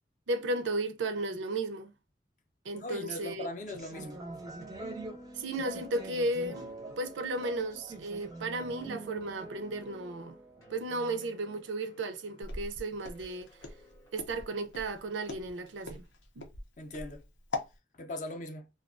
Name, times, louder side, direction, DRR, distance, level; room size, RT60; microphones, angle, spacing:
voice 1, 0.3-1.9 2.6-3.5 5.4-10.4 10.7-13.5 14.1-16.0 16.4-16.5, right 2 dB, 90° right, 0.5 m, -34 dB
voice 2, 2.8-4.2 16.8-17.2 17.9-18.7, left 1 dB, 45° left, 0.5 m, -39 dB
sound 1, 3.6-11.7, right 2 dB, 20° right, 0.4 m, -45 dB
sound 2, 4.6-14.2, equal, 15° left, 0.8 m, -59 dB
Walk footsteps, 12.4-17.7, left 3 dB, 90° left, 0.6 m, -41 dB
2.3 x 2.2 x 2.5 m
head